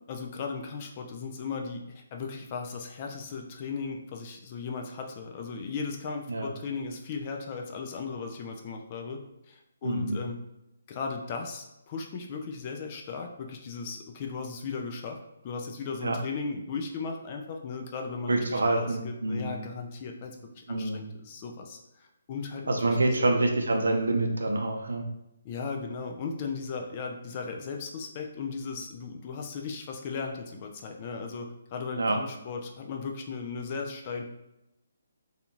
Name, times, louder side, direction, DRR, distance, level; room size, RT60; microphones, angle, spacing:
voice 1, 0.0-9.2 9.5-10.4 10.9-15.2 15.4-23.3 25.4-34.2, left 5 dB, 35° left, 3 dB, 0.4 m, -37 dB
voice 2, 9.8-10.2 16.0-16.2 18.3-19.6 20.7-21.1 22.7-25.0 32.0-32.2, right 2 dB, 80° right, 3 dB, 0.5 m, -26 dB
2.8 x 2.4 x 2.6 m, 0.88 s
hypercardioid pair, 150°, 0 cm